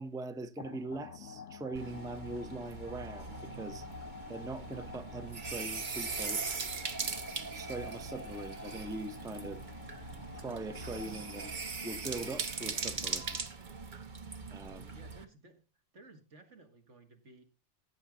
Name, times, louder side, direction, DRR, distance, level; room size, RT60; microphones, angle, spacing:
voice 1, 0.0-3.9 4.3-6.5 7.5-9.6 10.3-11.5 11.8-13.4 14.5-14.9, right 2 dB, 5° right, 0.5 m, -42 dB
sound 1, 0.6-11.9, left 6 dB, 80° left, 1.3 m, -50 dB
sound 2, 1.7-15.2, right 4 dB, 45° right, 1.0 m, -40 dB
sound 3, 3.7-12.7, right 2 dB, 30° right, 1.8 m, -59 dB
voice 2, 14.9-15.6 15.9-17.4, right 2 dB, 85° right, 2.1 m, -56 dB
15.5 x 7.5 x 3.7 m
omnidirectional pair, 1.2 m